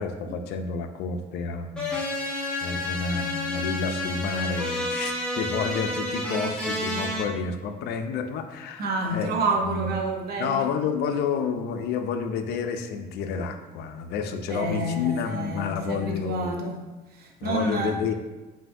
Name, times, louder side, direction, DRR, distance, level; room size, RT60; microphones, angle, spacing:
voice 1, 0.0-2.0 2.6-8.9 9.1-9.3 9.6-9.9 10.4-16.5 17.4-18.1, left 5 dB, 75° left, 7 dB, 0.4 m, -30 dB
sound 1, 1.8-7.2, left 1 dB, 5° left, 1.0 m, -30 dB
voice 2, 8.8-10.7 14.5-16.8 17.1-18.0, right 2 dB, 65° right, 1 dB, 0.8 m, -29 dB
5.5 x 2.6 x 2.6 m, 1.1 s
cardioid pair, 110°, 17 cm